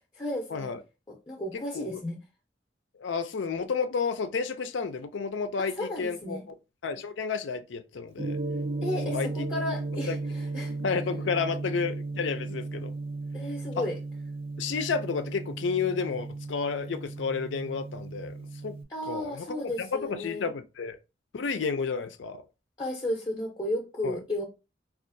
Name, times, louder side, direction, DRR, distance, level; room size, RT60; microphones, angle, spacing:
voice 1, 0.2-0.7 1.1-2.2 5.6-6.4 8.8-10.8 13.3-14.0 18.9-20.5 22.8-24.4, left 1 dB, 20° left, 0.6 m, -33 dB
voice 2, 3.0-6.4 6.8-8.4 9.1-9.5 10.1-10.2 10.8-12.9 13.8-13.9 14.6-18.4 18.6-18.7 19.0-21.0 21.3-22.4 24.0-24.2, left 5 dB, 85° left, 0.4 m, -31 dB
Gong, 8.2-18.8, right 3 dB, 30° right, 0.4 m, -35 dB
4.5 x 2.4 x 2.6 m
head